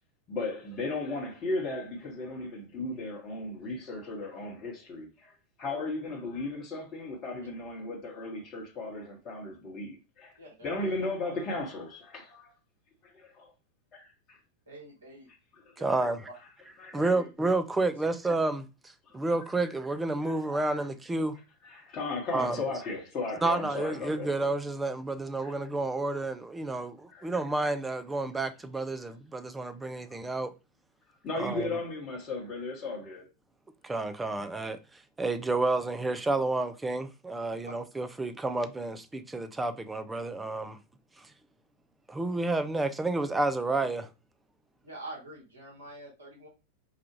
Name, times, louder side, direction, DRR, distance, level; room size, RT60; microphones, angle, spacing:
voice 1, 0.3-10.3 10.6-12.5 13.0-13.5 13.9-14.4 15.6-16.0 16.8-17.2 19.0-19.2 20.2-20.6 21.6-24.3 25.4-25.5 27.1-27.3 30.1-30.2 31.2-33.3, left 2 dB, 30° left, 1.1 m, -36 dB
voice 2, 10.4-10.9 14.7-15.3 15.8-16.0 16.9-17.3 37.6-37.8 44.8-46.5, right 1 dB, 70° right, 1.6 m, -45 dB
voice 3, 15.8-16.2 16.8-21.3 22.3-22.6 23.4-30.5 31.4-31.8 33.8-34.8 35.2-40.8 41.2-41.3 42.1-44.1, right 2 dB, 10° right, 0.4 m, -30 dB
4.8 x 2.4 x 3.0 m
figure-of-eight pair, 90°, 0 cm